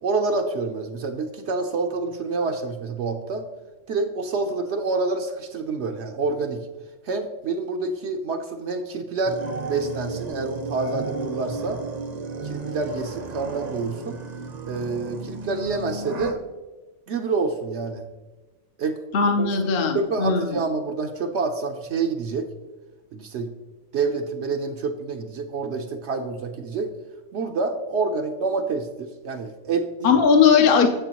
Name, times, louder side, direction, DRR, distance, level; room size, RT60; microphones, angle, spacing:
voice 1, 0.0-3.4 3.9-6.7 7.0-9.4 9.7-11.8 12.4-14.2 14.7-16.4 17.1-18.1 18.8-19.0 19.4-19.5 19.9-22.5 23.1-23.5 23.9-26.9 27.3-30.2, right 4 dB, 70° right, 4 dB, 0.9 m, -27 dB
sound 1, 9.2-16.3, right 3 dB, 40° right, 0.7 m, -33 dB
voice 2, 19.1-20.4 30.0-30.9, left 6 dB, 55° left, 4 dB, 0.8 m, -18 dB
9.1 x 7.6 x 2.9 m, 1.2 s
omnidirectional pair, 1.2 m